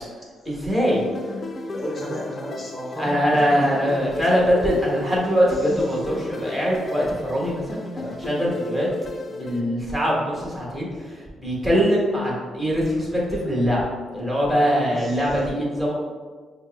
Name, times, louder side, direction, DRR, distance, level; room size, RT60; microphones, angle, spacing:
voice 1, 0.4-1.0 3.0-8.9 9.3-10.9 11.4-13.8 14.1-15.9, equal, 15° right, -5 dB, 1.2 m, -22 dB
sound 1, 0.9-9.6, left 2 dB, 35° left, 0.4 m, -34 dB
voice 2, 1.1-3.9 5.5-5.7 14.9-15.3, equal, 10° left, -4 dB, 0.8 m, -34 dB
5.0 x 2.0 x 3.4 m, 1.5 s
cardioid pair, 90°, 0 cm